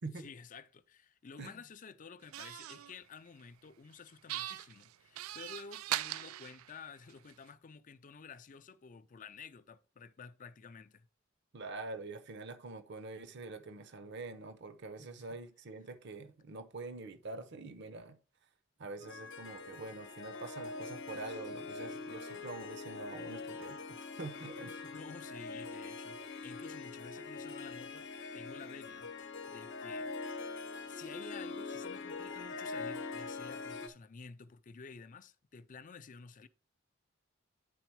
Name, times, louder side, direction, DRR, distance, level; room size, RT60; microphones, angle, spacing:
voice 1, 0.1-11.1 15.0-15.4 24.9-28.1 28.3-30.1 30.9-36.5, left 5 dB, 40° left, 0.5 m, -52 dB
sound 1, 2.3-2.9 4.3-7.3, right 14 dB, 90° right, 0.3 m, -40 dB
voice 2, 11.5-18.2 18.8-24.9, right 3 dB, 60° right, 0.7 m, -45 dB
Harp, 19.0-33.9, left 4 dB, 60° left, 0.8 m, -43 dB
9.2 x 3.9 x 4.6 m
head